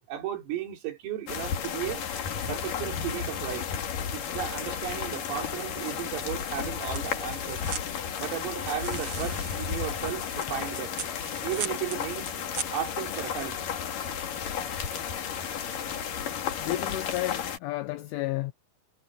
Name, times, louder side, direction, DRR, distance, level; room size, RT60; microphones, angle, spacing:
voice 1, 0.1-2.0 2.5-3.7 4.1-7.6 8.2-10.9 11.4-12.4 12.7-13.6, right 11 dB, 75° right, 6.0 m, -35 dB
sound 1, 1.3-17.6, left 7 dB, 50° left, 3.1 m, -33 dB
sound 2, 6.9-13.3, right 6 dB, 40° right, 2.9 m, -41 dB
voice 2, 16.6-18.5, left 17 dB, 75° left, 3.2 m, -32 dB
omnidirectional pair, 5.9 m